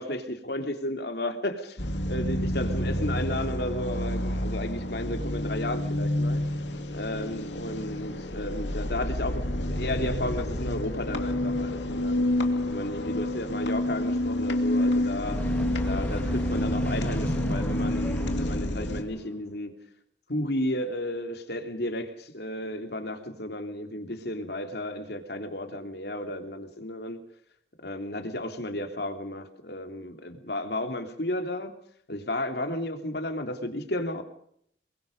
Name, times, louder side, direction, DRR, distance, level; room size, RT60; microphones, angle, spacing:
voice 1, 0.0-6.4 6.9-12.2 12.7-15.4 15.8-19.8 20.3-27.2 27.8-31.8 32.1-34.2, left 1 dB, 60° left, 3.1 m, -33 dB
sound 1, 1.8-19.0, left 1 dB, 80° left, 2.5 m, -29 dB
sound 2, 15.2-19.4, equal, 10° left, 1.9 m, -35 dB
27.5 x 22.5 x 5.4 m
head